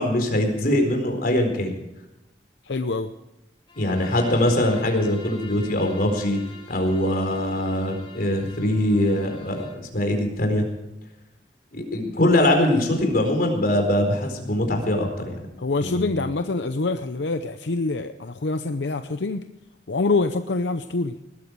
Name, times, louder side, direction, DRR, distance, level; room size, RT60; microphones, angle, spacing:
voice 1, 0.0-1.8 3.8-6.4 6.7-10.6 11.7-15.5 15.8-16.3, left 1 dB, 55° left, 4 dB, 4.4 m, -22 dB
voice 2, 2.6-3.1 15.6-19.5 19.9-21.2, left 3 dB, 90° left, 9 dB, 0.7 m, -25 dB
Bowed string instrument, 3.7-9.9, left 1 dB, 30° left, 4.2 m, -45 dB
20.0 x 13.5 x 4.7 m, 0.92 s
head